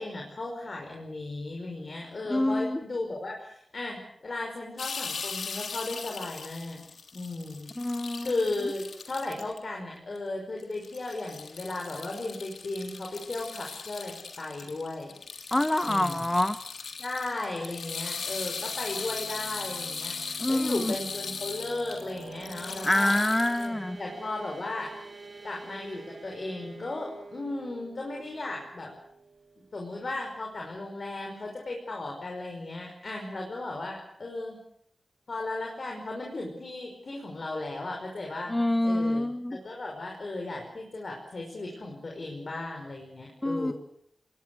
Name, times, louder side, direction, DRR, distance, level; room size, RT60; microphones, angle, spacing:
voice 1, 0.0-6.8 7.1-7.7 8.2-15.1 15.8-16.3 17.0-23.2 23.6-24.9 25.4-28.9 29.7-34.6 35.3-38.6 38.8-43.7, left 2 dB, 45° left, 1 dB, 5.5 m, -36 dB
voice 2, 2.3-2.8 7.8-8.3 15.5-16.6 20.4-20.9 22.8-24.0 38.5-39.6 43.4-43.7, left 1 dB, 15° left, 10 dB, 0.9 m, -26 dB
sound 1, 4.8-9.6 10.1-10.2 10.6-23.7, left 5 dB, 90° left, 3.3 m, -38 dB
sound 2, 17.8-30.4, right 3 dB, 35° right, 5.3 m, -48 dB
27.5 x 21.5 x 6.5 m, 0.72 s
wide cardioid pair, 125°, 0 cm